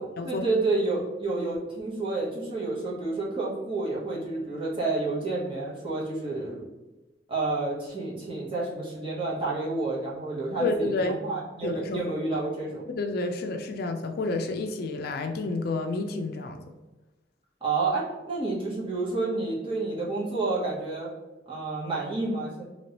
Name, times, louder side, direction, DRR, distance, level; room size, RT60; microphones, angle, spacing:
voice 1, 0.0-6.6 7.3-12.9 17.6-21.1 21.5-22.6, right 3 dB, 30° right, -5 dB, 0.9 m, -29 dB
voice 2, 10.6-11.2 11.6-12.0 12.3-12.4 12.9-16.6, left 3 dB, 55° left, 5 dB, 0.4 m, -30 dB
3.0 x 2.9 x 2.9 m, 1.1 s
head